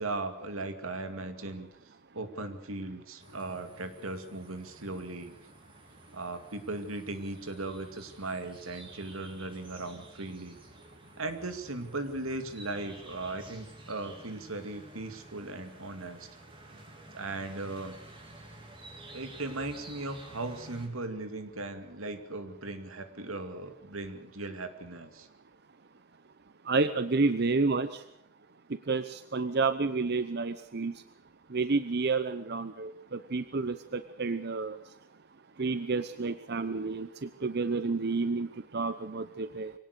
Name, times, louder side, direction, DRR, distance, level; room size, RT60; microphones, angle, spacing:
voice 1, 0.0-1.7 2.1-5.3 6.1-10.6 11.2-16.3 17.1-17.9 19.1-25.3, right 2 dB, 80° right, 8 dB, 2.4 m, -38 dB
sound 1, 3.2-20.9, right 1 dB, 25° right, 3.7 m, -52 dB
voice 2, 26.6-28.0 28.7-31.0 31.5-34.9 35.6-39.7, right 3 dB, 50° right, 12 dB, 0.8 m, -30 dB
24.0 x 18.0 x 6.7 m, 0.74 s
head